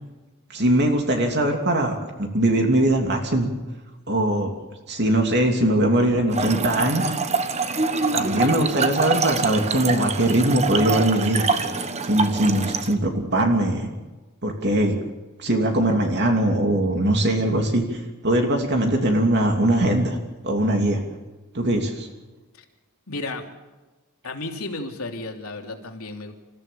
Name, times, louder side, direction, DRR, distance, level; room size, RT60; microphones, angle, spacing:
voice 1, 0.5-3.5 4.1-4.5 4.9-7.0 8.1-11.5 12.0-13.9 14.4-15.0 15.4-20.2 20.4-21.0 21.5-22.1, right 1 dB, 50° right, 3 dB, 3.0 m, -21 dB
Trickle dribble / Fill (with liquid), 6.3-12.9, right 4 dB, 30° right, 1.3 m, -25 dB
voice 2, 23.1-23.5 24.2-26.3, left 2 dB, 80° left, 3 dB, 3.0 m, -33 dB
28.0 x 15.0 x 7.1 m, 1.2 s
head